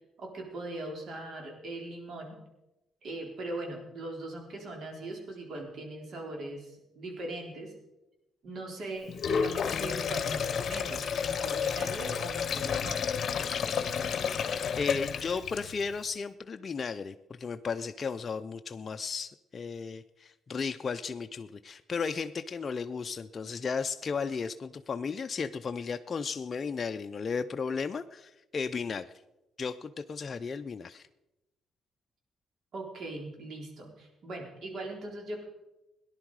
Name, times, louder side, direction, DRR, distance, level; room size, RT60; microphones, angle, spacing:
voice 1, 0.2-2.4 3.0-7.7 8.4-13.1 32.7-35.4, right 2 dB, 60° right, 1 dB, 3.9 m, -40 dB
Sink (filling or washing), 9.1-15.9, left 7 dB, 55° left, 1.0 m, -31 dB
voice 2, 14.8-29.1 29.6-31.1, left 5 dB, 40° left, 7 dB, 0.5 m, -35 dB
18.0 x 10.5 x 4.8 m, 0.96 s
cardioid pair, 90°, 0 cm